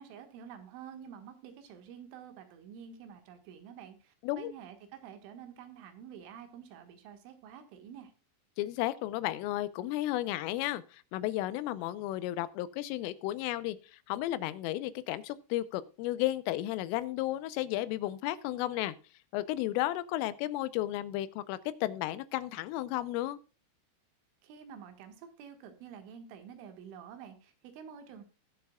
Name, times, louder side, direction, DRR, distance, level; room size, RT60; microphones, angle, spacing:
voice 1, 0.0-8.1 24.4-28.2, right 8 dB, 75° right, 7 dB, 4.0 m, -49 dB
voice 2, 8.6-13.8 14.1-18.9 19.3-23.4, left 15 dB, 85° left, 15 dB, 3.4 m, -33 dB
20.0 x 7.5 x 2.3 m, 0.33 s
omnidirectional pair, 5.7 m